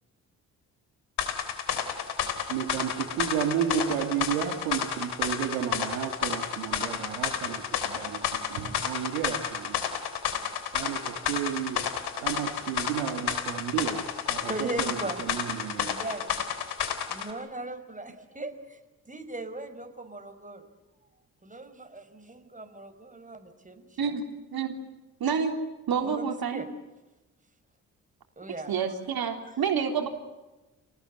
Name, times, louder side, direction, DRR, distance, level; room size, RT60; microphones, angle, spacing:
sound 1, 1.2-17.3, left 8 dB, 70° left, 3.5 m, -31 dB
voice 1, 2.5-9.8 10.7-11.9 12.2-16.0, right 9 dB, 85° right, 6 dB, 1.9 m, -32 dB
voice 2, 14.3-15.3 15.6-16.4 16.8-18.8 19.1-20.6 21.4-24.2 26.0-26.7 28.4-28.7, right 2 dB, 20° right, 7 dB, 5.1 m, -39 dB
voice 3, 25.2-25.6 25.9-26.7 28.7-30.1, right 6 dB, 60° right, 5 dB, 3.6 m, -28 dB
28.5 x 19.0 x 9.7 m, 1.1 s
hypercardioid pair, 40°, 41 cm